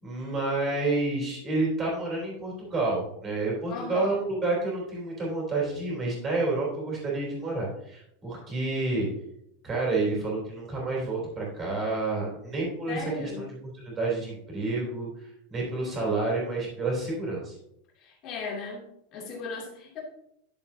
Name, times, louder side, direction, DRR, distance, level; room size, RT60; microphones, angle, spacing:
voice 1, 0.0-9.1 9.6-13.5 13.8-17.6, right 3 dB, 20° right, -3 dB, 3.3 m, -29 dB
voice 2, 3.7-4.2 12.9-13.5 18.0-18.9 19.1-20.0, left 4 dB, 30° left, -3 dB, 2.7 m, -36 dB
11.0 x 7.1 x 2.8 m, 0.75 s
supercardioid pair, 180°, 0 cm